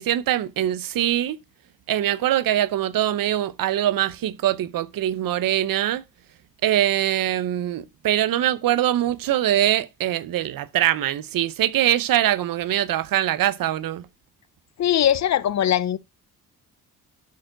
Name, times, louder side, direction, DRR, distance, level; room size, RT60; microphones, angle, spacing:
voice 1, 0.0-1.4 1.9-6.0 6.6-14.1, right 12 dB, 65° right, 0.7 m, -23 dB
voice 2, 14.8-16.0, left 10 dB, 50° left, 0.6 m, -20 dB
12.0 x 4.5 x 3.8 m
wide cardioid pair, 145°, 36 cm